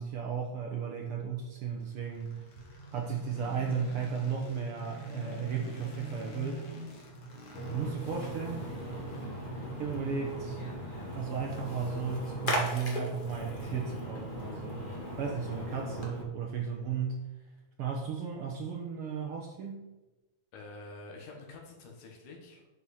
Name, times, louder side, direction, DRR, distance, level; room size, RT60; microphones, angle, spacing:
voice 1, 0.0-2.4 2.9-6.6 7.7-8.7 9.8-10.6 11.1-14.8 15.2-17.3 17.8-19.9, right 6 dB, 65° right, 1 dB, 1.5 m, -35 dB
sound 1, 1.8-15.9, right 1 dB, 55° left, 2.3 m, -47 dB
Splash splatter, 7.5-16.2, equal, 30° left, 0.9 m, -38 dB
voice 2, 20.5-22.7, left 2 dB, 90° left, 0 dB, 3.1 m, -47 dB
10.5 x 5.6 x 4.3 m, 1.1 s
omnidirectional pair, 3.4 m